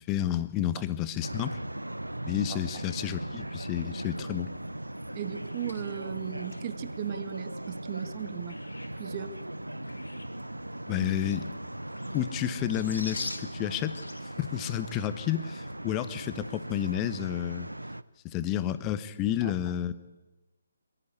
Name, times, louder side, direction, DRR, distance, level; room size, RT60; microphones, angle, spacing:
voice 1, 0.0-1.6 2.2-4.5 10.9-11.4 12.1-14.0 14.4-17.7 18.2-19.9, left 12 dB, 20° left, 13 dB, 1.1 m, -30 dB
sound 1, 1.2-18.0, right 1 dB, 85° right, 0.8 m, -38 dB
voice 2, 5.1-8.6 9.0-9.4 19.4-19.5, right 10 dB, 30° right, 13 dB, 1.2 m, -37 dB
sound 2, 5.4-6.8 7.3-7.4 8.1-9.0 9.3-10.4 10.7-12.3 12.6-15.1 15.3-15.4 15.7-15.8 16.2-16.5 16.8-16.9, left 2 dB, 70° left, 3.0 m, -44 dB
23.0 x 16.5 x 8.4 m, 1.1 s
figure-of-eight pair, 140°, 0 cm